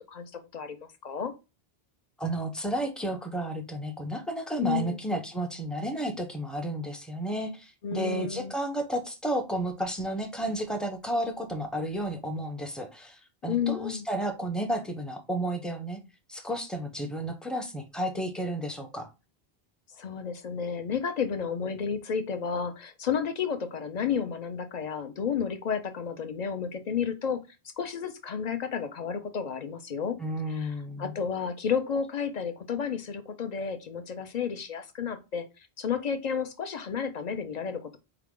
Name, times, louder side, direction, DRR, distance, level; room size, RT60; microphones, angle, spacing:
voice 1, 0.0-1.3 4.6-5.0 7.8-8.5 13.5-14.1 20.0-27.4 27.8-30.2 30.5-35.4 35.8-38.0, left 7 dB, 50° left, 8 dB, 0.6 m, -31 dB
voice 2, 2.2-16.0 16.3-19.1 30.2-31.1, right 1 dB, ahead, 4 dB, 0.5 m, -32 dB
4.7 x 2.3 x 3.6 m, 0.27 s
omnidirectional pair, 1.0 m